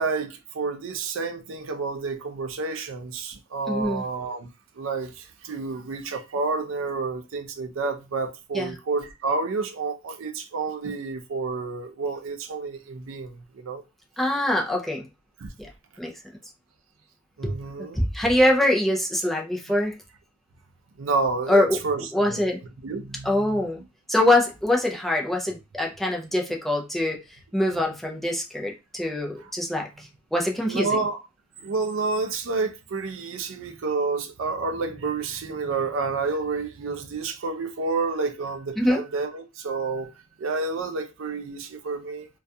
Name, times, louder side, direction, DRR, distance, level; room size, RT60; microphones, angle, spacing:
voice 1, 0.0-4.5 4.8-13.8 15.4-15.5 17.4-18.0 21.0-22.4 22.8-23.7 29.4-29.5 30.7-31.2 31.6-42.3, right 4 dB, 75° right, 0.4 m, -29 dB
voice 2, 3.7-4.0 8.5-8.7 14.2-15.1 16.0-16.1 17.4-17.5 18.0-19.9 21.5-21.8 22.1-22.6 23.2-23.8 24.1-27.2 27.5-29.9 30.3-30.9 38.8-39.0, left 1 dB, ahead, 0.4 m, -23 dB
2.3 x 2.2 x 2.6 m
head